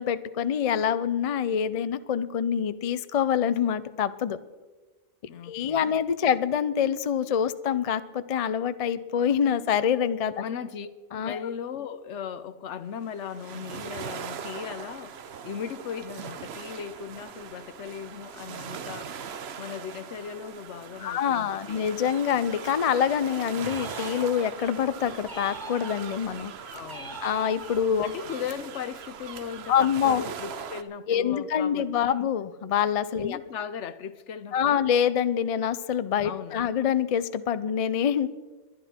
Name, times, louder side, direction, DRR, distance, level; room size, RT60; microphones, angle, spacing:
voice 1, 0.0-4.4 5.4-10.3 11.1-11.4 21.0-26.5 27.2-28.1 29.7-30.2 31.1-33.4 34.5-38.3, left 8 dB, 50° left, 0.4 m, -26 dB
voice 2, 5.3-6.4 10.4-10.9 11.2-15.2 15.4-19.2 19.6-21.8 26.7-27.2 28.0-32.3 33.2-34.8 36.2-36.7, left 7 dB, 70° left, 1.0 m, -38 dB
sound 1, 13.0-30.8, right 7 dB, 60° right, 1.0 m, -40 dB
sound 2, 23.6-24.7 25.2-26.3 26.8-28.0, right 2 dB, 20° right, 1.0 m, -42 dB
23.0 x 10.0 x 4.4 m
omnidirectional pair, 1.3 m